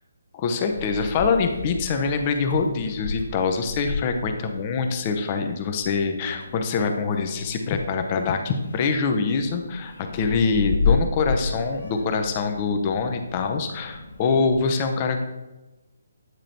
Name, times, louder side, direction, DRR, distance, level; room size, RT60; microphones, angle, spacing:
voice 1, 0.4-15.2, left 4 dB, 30° left, 5 dB, 0.7 m, -24 dB
Meow, 0.6-14.6, left 4 dB, 65° left, 1.1 m, -33 dB
9.1 x 4.9 x 2.9 m, 1.1 s
figure-of-eight pair, 140°, 0 cm